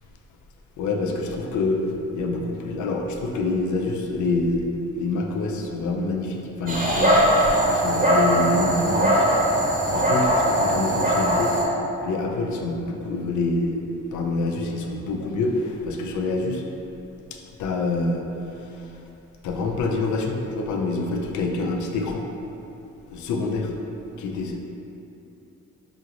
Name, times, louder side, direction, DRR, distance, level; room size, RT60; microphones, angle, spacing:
voice 1, 0.8-1.8 2.1-7.3 7.7-9.4 9.9-11.5 12.0-13.8 14.1-16.6 17.6-18.9 19.4-22.2 23.1-23.7 24.2-24.6, left 2 dB, 75° left, 2 dB, 0.5 m, -26 dB
Dog, 6.7-11.6, equal, 25° right, 0.8 m, -20 dB
5.1 x 2.5 x 2.9 m, 2.8 s
cardioid pair, 90°, 30 cm